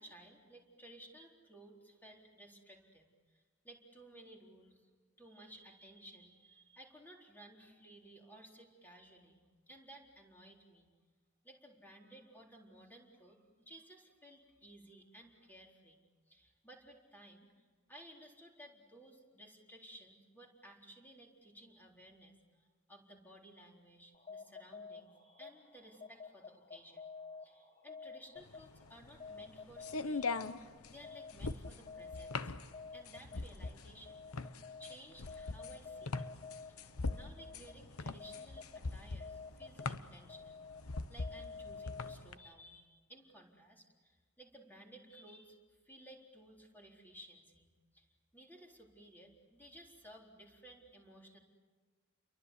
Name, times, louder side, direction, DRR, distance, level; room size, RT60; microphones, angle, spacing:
voice 1, 0.0-4.9 5.2-10.9 11.4-27.1 27.4-30.3 30.9-32.5 32.9-36.8 37.1-51.4, right 1 dB, 10° left, 0 dB, 4.1 m, -58 dB
sound 1, 24.1-42.6, left 4 dB, 35° left, 1.2 m, -51 dB
sound 2, 28.5-42.3, left 3 dB, 85° left, 1.0 m, -41 dB
30.0 x 23.5 x 8.3 m, 1.4 s
head